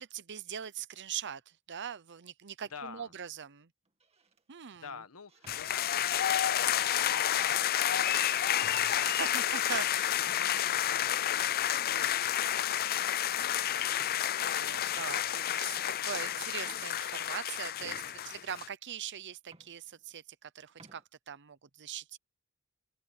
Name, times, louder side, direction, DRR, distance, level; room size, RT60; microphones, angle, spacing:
voice 1, 0.0-3.7 4.5-4.9 9.1-10.2 14.4-22.2, right 8 dB, 55° right, 0.8 m, -41 dB
sound 1, 2.6-3.0 3.9-4.5 5.3-6.3 6.9-7.0 7.5-8.0 8.5-8.6 9.2-9.4 10.2-10.9 12.0-12.5 12.8-13.2 14.0-14.6 15.4-15.5 15.8-17.0 17.7-18.6 19.1-19.2 19.4-20.4 20.7-21.0, right 2 dB, 30° right, 2.3 m, -62 dB
voice 2, 2.7-3.1 4.7-9.4 9.7-13.8, left 5 dB, 70° left, 1.6 m, -50 dB
sound 2, 5.5-18.7, left 11 dB, 45° left, 0.4 m, -30 dB
sound 3, 8.8-9.1 10.3-10.4 11.7-11.8 13.0-13.2 14.4-14.5 15.7-15.8, left 6 dB, 20° left, 6.4 m, -52 dB
open air
head